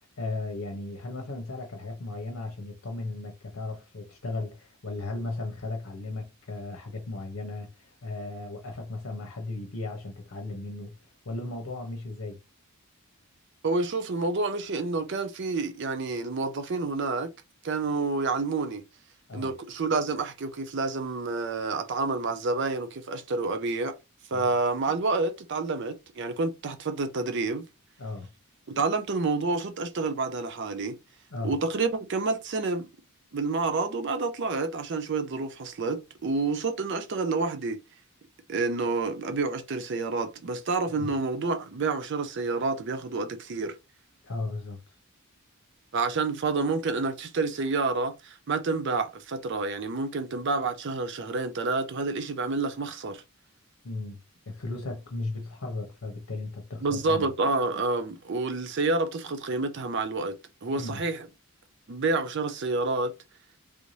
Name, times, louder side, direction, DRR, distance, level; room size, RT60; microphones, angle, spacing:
voice 1, 0.2-11.0 11.2-12.4 19.3-19.5 24.3-24.5 28.0-28.3 31.3-31.6 40.9-41.1 44.2-44.8 53.8-54.2 54.5-57.3 60.7-61.0, left 2 dB, 70° left, 0.8 m, -36 dB
voice 2, 13.6-17.3 17.6-18.8 19.3-24.0 24.3-27.7 28.7-31.0 31.4-32.9 33.3-37.8 38.5-43.8 45.9-53.2 56.8-60.3 60.6-61.3 61.9-63.1, right 3 dB, 55° right, 0.5 m, -29 dB
3.4 x 2.6 x 3.1 m
head